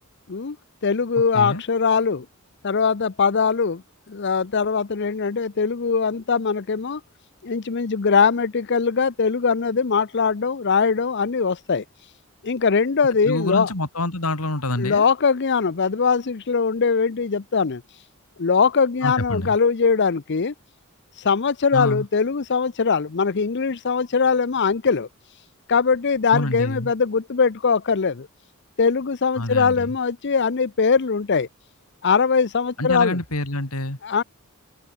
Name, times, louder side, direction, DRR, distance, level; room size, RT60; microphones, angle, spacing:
voice 1, 0.8-2.2 2.6-3.8 4.1-7.0 7.4-11.8 12.4-13.7 14.8-18.0 18.4-20.5 21.2-25.1 25.7-28.3 28.8-31.5 32.0-33.2 34.0-34.2, left 5 dB, 55° left, 0.7 m, -21 dB
voice 2, 13.2-15.1 19.0-19.6 21.7-22.1 26.3-26.9 29.4-29.9 32.8-34.0, left 1 dB, 90° left, 3.8 m, -26 dB
head